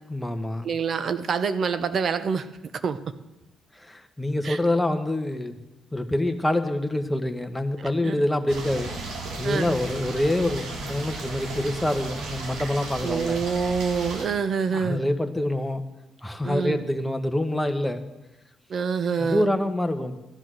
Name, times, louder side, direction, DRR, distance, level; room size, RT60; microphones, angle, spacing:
voice 1, 0.1-0.7 3.7-5.6 5.9-8.9 9.4-13.4 14.7-15.8 16.2-18.1 19.2-20.2, left 1 dB, 5° left, 6 dB, 1.3 m, -26 dB
voice 2, 0.6-2.5 2.8-3.0 4.4-4.6 7.8-8.2 9.4-9.8 13.0-15.0 16.4-16.8 18.7-19.5, right 6 dB, 55° right, 12 dB, 1.0 m, -26 dB
sound 1, 8.5-14.3, right 3 dB, 85° right, 3.2 m, -35 dB
14.0 x 10.5 x 6.4 m, 0.97 s
cardioid pair, 90°, 0 cm